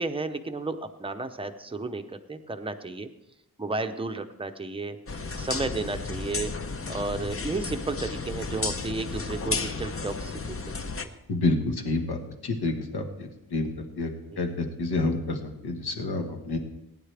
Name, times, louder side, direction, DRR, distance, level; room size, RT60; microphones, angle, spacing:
voice 1, 0.0-3.1 3.6-5.0 5.4-6.5 6.9-10.6, right 3 dB, 15° right, 7 dB, 0.7 m, -32 dB
sound 1, 5.1-11.0, left 4 dB, 35° left, 0.8 m, -33 dB
voice 2, 11.3-14.1 14.4-16.6, left 2 dB, 70° left, 4 dB, 1.6 m, -29 dB
19.5 x 9.9 x 3.4 m, 0.92 s
wide cardioid pair, 155°, 40 cm